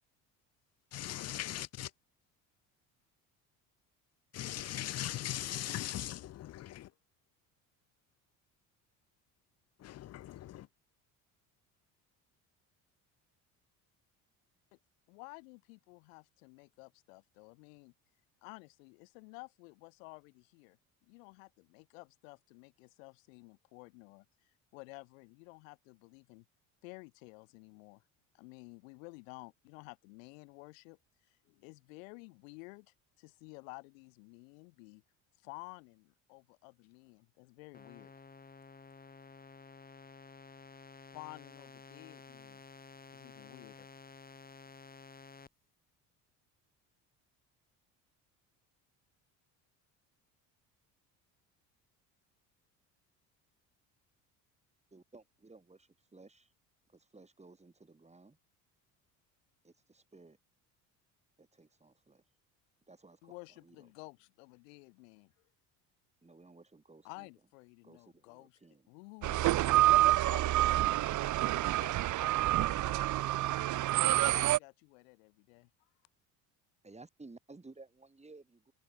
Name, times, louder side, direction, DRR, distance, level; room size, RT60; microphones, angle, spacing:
voice 1, 0.9-1.9 4.3-6.3 6.5-6.8 9.8-10.0, left 12 dB, 40° left, 0.6 m, -38 dB
voice 2, 15.1-17.9 18.4-20.8 21.1-26.4 26.8-28.0 28.3-31.0 31.3-35.0 35.4-38.1 41.1-42.6 43.1-43.9 63.2-65.3 67.0-68.6 68.9-73.2 74.2-75.7, left 30 dB, 90° left, 4.4 m, -53 dB
sound 1, 37.7-45.5, left 4 dB, 25° left, 3.4 m, -53 dB
voice 3, 54.9-56.5 56.9-58.4 59.6-60.4 61.4-62.2 62.9-63.3 63.6-63.8 66.2-67.3 67.8-68.8 76.8-78.7, right 3 dB, 15° right, 6.2 m, -56 dB
sound 2, 69.2-74.6, right 15 dB, 50° right, 0.7 m, -28 dB
supercardioid pair, 80°, 38 cm